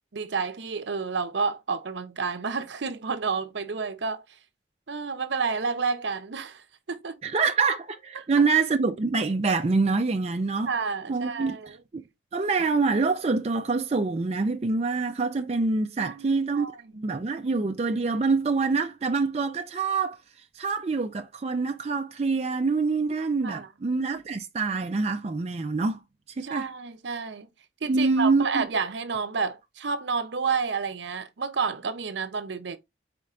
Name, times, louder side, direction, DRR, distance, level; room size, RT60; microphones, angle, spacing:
voice 1, 0.1-4.2 4.9-7.2 8.1-8.2 10.7-11.8 16.0-17.0 23.4-23.7 26.4-27.5 27.8-32.8, right 5 dB, 70° right, 0.6 m, -30 dB
voice 2, 7.2-10.7 11.1-11.6 11.9-12.0 12.3-16.7 16.9-20.2 20.6-26.0 26.4-26.7 27.9-28.7, right 4 dB, 35° right, 0.4 m, -25 dB
4.3 x 4.3 x 2.4 m
head